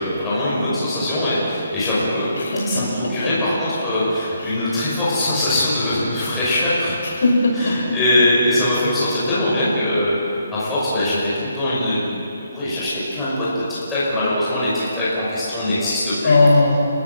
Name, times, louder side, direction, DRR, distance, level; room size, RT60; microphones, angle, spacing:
voice 1, 0.0-2.3 2.6-7.0 7.6-10.2 10.5-16.4, left 1 dB, 5° left, -10 dB, 5.9 m, -22 dB
voice 2, 2.3-3.3 4.4-4.6 7.0-8.0 16.2-16.7, left 2 dB, 60° left, -1 dB, 6.2 m, -19 dB
30.0 x 16.0 x 7.6 m, 2.8 s
hypercardioid pair, 175°, 0 cm